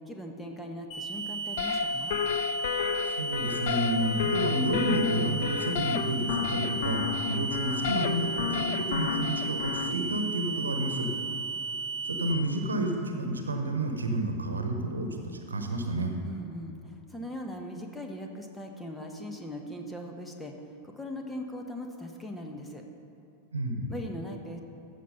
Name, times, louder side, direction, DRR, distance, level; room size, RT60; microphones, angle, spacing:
voice 1, 0.1-2.2 16.2-22.8 23.9-24.6, left 1 dB, 5° left, 2 dB, 1.1 m, -40 dB
sound 1, 0.9-12.3, right 3 dB, 40° left, 2.0 m, -34 dB
sound 2, 1.6-9.9, left 7 dB, 55° left, 0.4 m, -32 dB
voice 2, 3.1-11.1 12.0-16.1 23.5-23.9, right 1 dB, 75° right, 4 dB, 1.1 m, -30 dB
14.5 x 6.0 x 5.6 m, 2.6 s
figure-of-eight pair, 90°, 0 cm